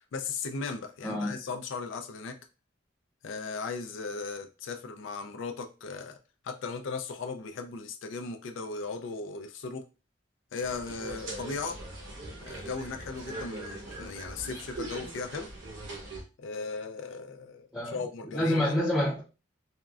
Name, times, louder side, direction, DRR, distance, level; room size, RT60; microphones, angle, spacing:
voice 1, 0.1-2.4 3.2-6.2 6.4-9.8 10.5-11.8 12.4-15.5 16.4-18.8, left 4 dB, 85° left, 0.4 m, -37 dB
voice 2, 1.0-1.3 17.7-17.9 18.3-19.2, left 1 dB, 5° left, 0.5 m, -27 dB
sound 1, 10.6-16.2, right 2 dB, 75° right, 1.1 m, -41 dB
3.6 x 2.0 x 2.3 m
head